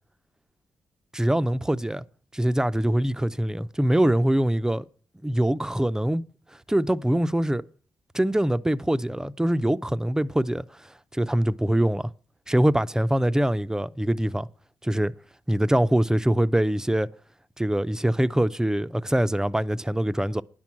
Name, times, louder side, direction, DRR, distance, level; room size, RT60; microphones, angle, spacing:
voice 1, 1.1-2.0 2.3-4.8 5.2-6.2 6.7-7.7 8.1-12.1 12.5-14.5 14.8-15.1 15.5-17.1 17.6-20.4, right 1 dB, 10° right, 0.6 m, -23 dB
10.5 x 6.1 x 8.5 m
cardioid pair, 65°, 7 cm